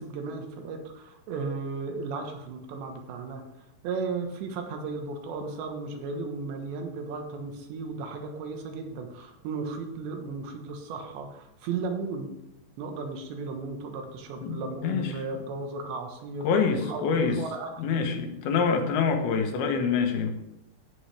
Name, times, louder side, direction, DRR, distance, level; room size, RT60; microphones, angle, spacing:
voice 1, 0.0-3.4 3.8-12.3 12.8-17.7, right 4 dB, 80° right, 4 dB, 3.6 m, -35 dB
voice 2, 14.4-15.1 16.4-17.4 17.8-20.3, left 5 dB, 70° left, 5 dB, 2.9 m, -26 dB
16.0 x 8.3 x 3.4 m, 0.87 s
omnidirectional pair, 5.0 m